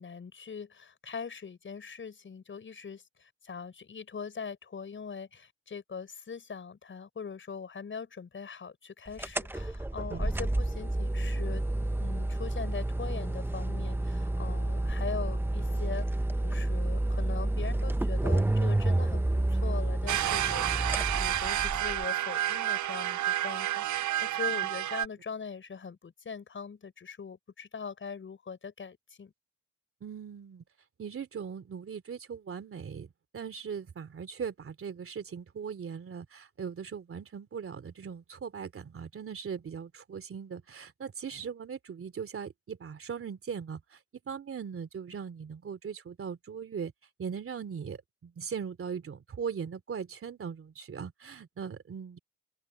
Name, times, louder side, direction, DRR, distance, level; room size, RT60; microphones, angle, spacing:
voice 1, 0.0-11.6 12.0-20.7 20.9-29.3, left 6 dB, 40° left, 7.1 m, -41 dB
sound 1, 9.2-22.0, right 1 dB, 5° right, 1.0 m, -30 dB
sound 2, 20.1-25.1, right 13 dB, 70° right, 0.9 m, -30 dB
voice 2, 30.0-30.6 31.0-33.1 33.3-43.8 44.3-46.9 47.2-52.2, right 6 dB, 45° right, 3.0 m, -39 dB
open air
cardioid pair, 90°, 30 cm